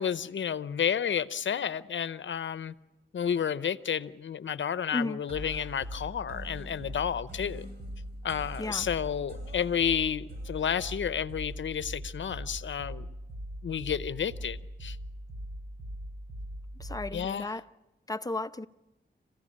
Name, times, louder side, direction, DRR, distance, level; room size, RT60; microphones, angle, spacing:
voice 1, 0.0-2.7 3.1-7.7 8.2-13.0 13.6-15.0 17.1-17.6, left 8 dB, 75° left, 0.8 m, -31 dB
sound 1, 5.3-17.3, equal, 55° right, 7.0 m, -41 dB
voice 2, 16.8-17.6 18.1-18.7, left 2 dB, 20° left, 0.8 m, -34 dB
27.0 x 15.5 x 8.7 m
cardioid pair, 75°, 20 cm